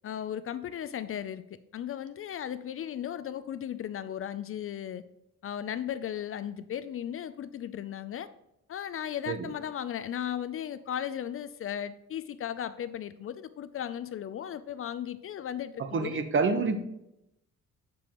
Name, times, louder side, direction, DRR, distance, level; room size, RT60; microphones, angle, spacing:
voice 1, 0.0-1.4 1.7-5.0 5.4-8.3 8.7-16.2, left 10 dB, 45° left, 13 dB, 0.4 m, -36 dB
voice 2, 15.9-16.8, right 4 dB, 40° right, 9 dB, 0.9 m, -27 dB
9.4 x 6.9 x 3.0 m, 0.82 s
cardioid pair, 90°, 30 cm